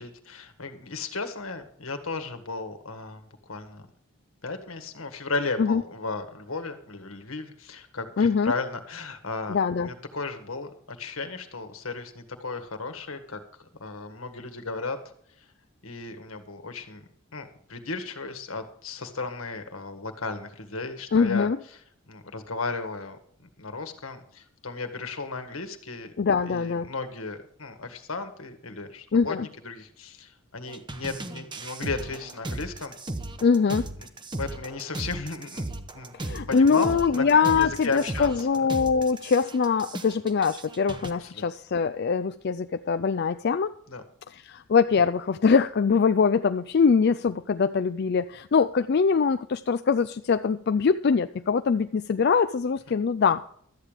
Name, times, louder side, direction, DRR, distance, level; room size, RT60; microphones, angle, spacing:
voice 1, 0.0-3.8 4.4-15.0 15.4-15.5 15.8-17.0 17.3-21.8 22.1-23.2 23.6-26.1 26.4-29.4 29.6-32.9 34.0-34.1 34.4-35.7 35.9-38.7 41.2-41.4 43.9-44.0, left 3 dB, 85° left, 7 dB, 1.7 m, -35 dB
voice 2, 8.2-8.5 9.5-9.9 21.1-21.6 26.2-26.9 29.1-29.5 33.4-33.9 36.1-43.7 44.3-53.5, left 5 dB, 50° left, 10 dB, 0.4 m, -23 dB
sound 1, 30.7-41.1, right 2 dB, 20° right, 0.9 m, -36 dB
13.0 x 9.0 x 5.0 m, 0.64 s
head